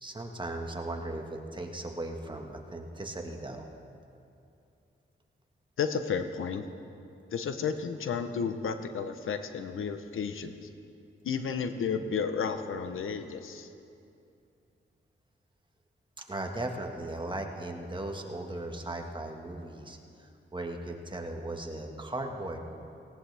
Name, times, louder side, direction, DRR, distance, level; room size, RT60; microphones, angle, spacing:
voice 1, 0.0-3.7 16.2-22.6, right 2 dB, 25° right, 2 dB, 1.6 m, -37 dB
voice 2, 5.8-6.6 7.3-10.7 11.2-13.7, left 6 dB, 90° left, 8 dB, 0.9 m, -32 dB
18.5 x 18.0 x 3.5 m, 2.6 s
cardioid pair, 85°, 21 cm